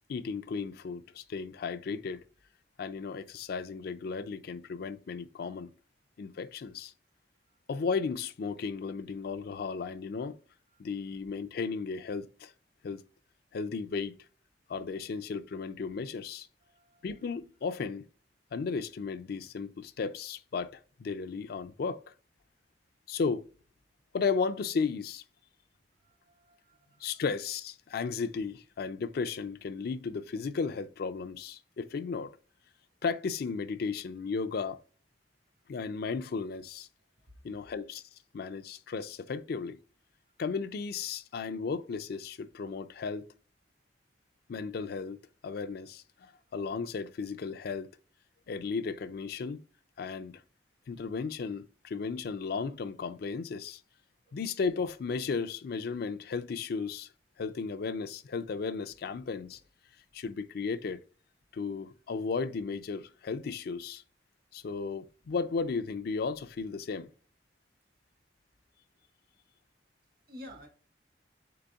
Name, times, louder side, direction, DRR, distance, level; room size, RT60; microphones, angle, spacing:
voice 1, 0.1-2.2 2.8-5.7 6.2-6.9 7.7-10.4 10.8-12.5 12.8-13.0 13.5-14.1 14.7-16.5 17.0-18.0 18.5-22.0 23.1-23.4 24.1-25.2 27.0-32.3 33.0-34.8 35.7-36.9 37.4-38.0 38.3-39.8 40.4-43.3 44.5-45.2 45.4-47.9 48.5-49.6 50.0-50.4 50.9-53.8 54.3-57.1 57.4-59.6 60.1-61.0 61.5-64.0 64.5-67.1, left 5 dB, 60° left, 0.4 m, -34 dB
voice 2, 16.7-17.0 26.0-27.2 54.3-54.4 70.3-70.7, left 1 dB, 60° right, 1.3 m, -51 dB
3.9 x 3.4 x 3.4 m
head